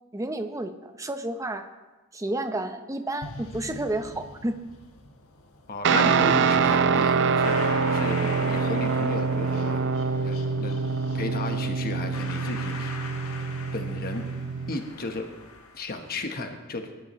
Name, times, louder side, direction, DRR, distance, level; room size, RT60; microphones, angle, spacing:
voice 1, 0.1-1.7 2.1-4.6 8.2-8.3, right 1 dB, 15° right, 8 dB, 0.8 m, -31 dB
sound 1, 3.2-16.1, left 3 dB, 80° left, 1.6 m, -43 dB
voice 2, 5.7-9.9 10.2-10.8 11.1-13.0 13.7-14.3 14.7-15.3 15.7-16.9, left 2 dB, 45° left, 5 dB, 1.1 m, -34 dB
Guitar, 5.8-14.8, right 5 dB, 55° right, 0.5 m, -25 dB
22.0 x 11.5 x 3.1 m, 1.2 s
head